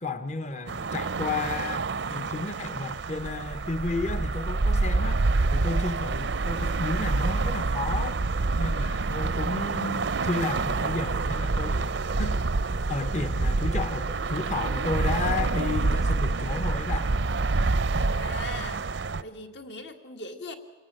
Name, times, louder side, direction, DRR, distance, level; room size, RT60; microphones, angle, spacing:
voice 1, 0.0-5.2 5.5-8.2 8.6-11.9 12.2-12.4 12.9-17.1, left 3 dB, 40° left, 10 dB, 0.7 m, -32 dB
sound 1, 0.7-19.2, right 3 dB, 75° right, 0.6 m, -27 dB
voice 2, 18.0-18.8 19.2-20.5, left 3 dB, 70° left, 6 dB, 2.1 m, -40 dB
26.0 x 17.5 x 9.0 m, 1.5 s
head